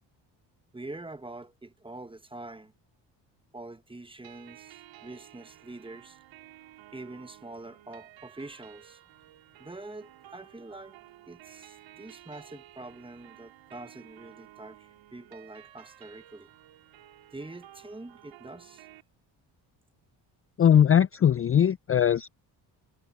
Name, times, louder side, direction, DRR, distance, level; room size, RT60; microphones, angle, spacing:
voice 1, 0.7-2.7 3.5-6.2 6.9-9.0 9.6-11.0 11.3-16.5 17.3-18.9, right 2 dB, 10° right, 1.4 m, -45 dB
sound 1, 4.2-19.0, right 14 dB, 75° right, 3.3 m, -53 dB
voice 2, 20.6-22.3, left 9 dB, 30° left, 0.5 m, -20 dB
supercardioid pair, 70°, 46 cm